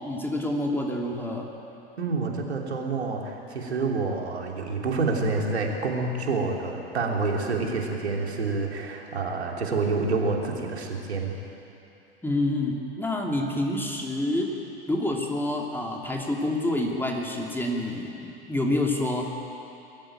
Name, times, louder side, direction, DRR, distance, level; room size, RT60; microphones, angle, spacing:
voice 1, 0.0-1.4 12.2-14.6 14.9-19.3, left 1 dB, 5° left, -1 dB, 2.8 m, -27 dB
voice 2, 2.0-11.3, right 3 dB, 75° right, 0 dB, 3.2 m, -28 dB
22.5 x 14.5 x 9.0 m, 2.8 s
figure-of-eight pair, 90°, 33 cm